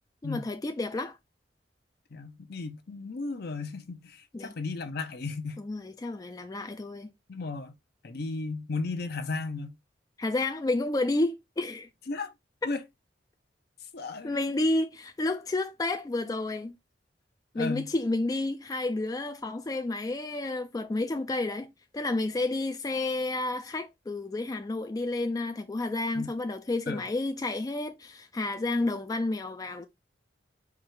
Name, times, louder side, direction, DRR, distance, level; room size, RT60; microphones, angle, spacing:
voice 1, 0.2-1.2 4.3-4.5 5.6-7.1 10.2-11.9 14.2-16.7 17.5-29.9, left 2 dB, 20° left, 0.3 m, -30 dB
voice 2, 2.1-5.6 7.3-7.7 8.0-9.7 12.1-12.3 12.6-12.8 13.9-14.4 17.5-17.9 26.1-26.3 26.9-27.0, left 3 dB, 60° left, 0.7 m, -35 dB
4.7 x 2.4 x 4.5 m
head